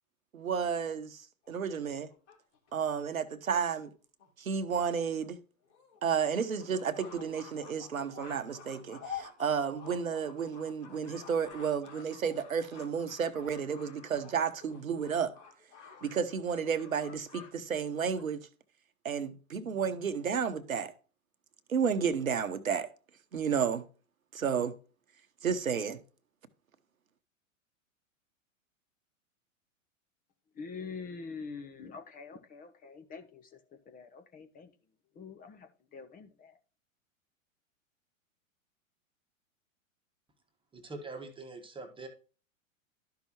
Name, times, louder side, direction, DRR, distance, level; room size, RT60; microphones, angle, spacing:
voice 1, 0.3-1.2 1.5-2.1 2.7-3.9 4.4-5.4 6.0-15.3 16.0-18.5 19.0-20.9 21.7-22.9 23.3-23.9 24.3-24.7 25.4-26.0, right 7 dB, 80° right, 1.1 m, -32 dB
sound 1, 1.4-3.0 3.8-3.9 4.2-4.3 4.6-4.7 5.0-5.1 5.7-17.5 17.8-18.2, left 7 dB, 55° left, 3.5 m, -50 dB
voice 2, 30.5-34.7 35.1-36.5, left 5 dB, 20° left, 0.9 m, -45 dB
voice 3, 40.7-42.1, right 3 dB, 10° right, 1.4 m, -43 dB
12.0 x 5.8 x 3.0 m
figure-of-eight pair, 100°, 41 cm